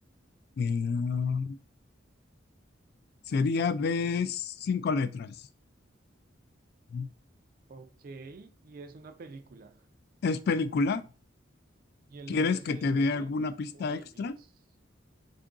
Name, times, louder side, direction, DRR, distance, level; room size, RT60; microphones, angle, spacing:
voice 1, 0.6-1.6 3.3-5.4 6.9-7.1 10.2-11.0 12.3-14.3, left 4 dB, 55° left, 0.3 m, -28 dB
voice 2, 7.7-9.9 12.1-13.3 13.7-14.5, right 3 dB, 50° right, 0.4 m, -47 dB
3.7 x 2.5 x 3.5 m
head